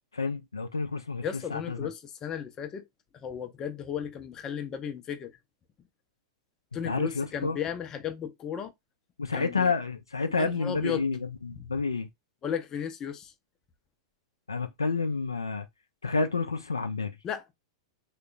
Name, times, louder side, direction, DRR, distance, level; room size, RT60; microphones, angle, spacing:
voice 1, 0.1-1.2 1.5-1.9 6.8-7.6 9.2-12.1 14.5-15.7 16.0-17.2, left 4 dB, 80° left, 0.3 m, -29 dB
voice 2, 1.2-2.8 3.2-5.3 6.7-8.7 9.3-9.7 10.4-11.0 11.5-11.6 12.4-13.3 17.2-17.5, left 8 dB, 25° left, 0.5 m, -35 dB
3.5 x 2.1 x 2.4 m
figure-of-eight pair, 95°, 2 cm